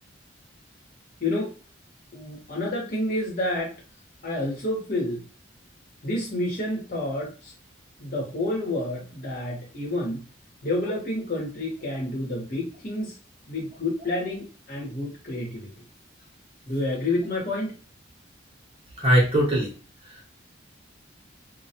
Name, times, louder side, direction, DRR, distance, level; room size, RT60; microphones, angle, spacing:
voice 1, 1.2-1.5 2.1-3.7 4.2-5.2 6.0-7.5 8.0-10.2 10.6-13.1 13.5-15.7 16.7-17.8, left 1 dB, 50° left, -3 dB, 1.0 m, -29 dB
voice 2, 19.0-19.7 20.1-20.2, equal, 30° right, -4 dB, 0.8 m, -21 dB
2.2 x 2.2 x 2.8 m, 0.36 s
head